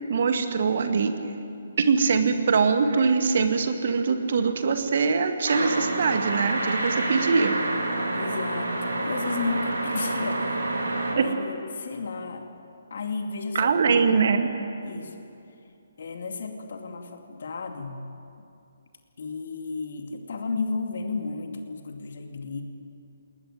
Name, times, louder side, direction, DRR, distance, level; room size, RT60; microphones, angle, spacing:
voice 1, 0.1-1.2 1.8-7.5 11.1-11.3 13.5-14.5, right 5 dB, 50° right, 7 dB, 2.0 m, -22 dB
sound 1, 5.5-11.1, right 2 dB, 65° right, 4.0 m, -28 dB
voice 2, 8.1-10.6 11.2-12.5 12.9-13.8 14.8-15.2 16.0-18.0 18.4-18.5 19.2-22.6, left 4 dB, 50° left, 5 dB, 2.5 m, -33 dB
20.5 x 19.5 x 9.2 m, 2.6 s
figure-of-eight pair, 135°, 0 cm